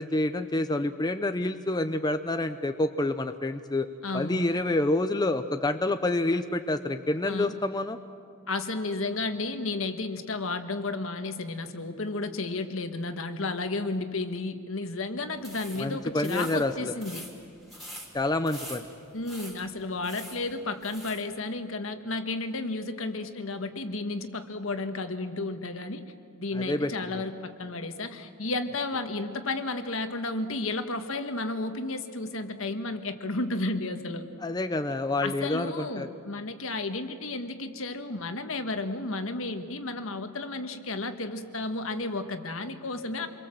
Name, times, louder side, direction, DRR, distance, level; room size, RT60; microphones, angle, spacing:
voice 1, 0.0-3.9 4.1-8.0 15.8-16.9 18.1-18.9 26.5-26.9 34.4-36.1, left 2 dB, 20° left, 8 dB, 0.7 m, -28 dB
voice 2, 4.0-4.6 7.3-7.6 8.5-17.2 19.1-26.0 26.4-34.2 35.2-43.3, left 2 dB, 70° left, 8 dB, 1.5 m, -32 dB
sound 1, 15.4-21.3, equal, ahead, 3.5 m, -46 dB
27.0 x 23.0 x 7.7 m, 2.3 s
head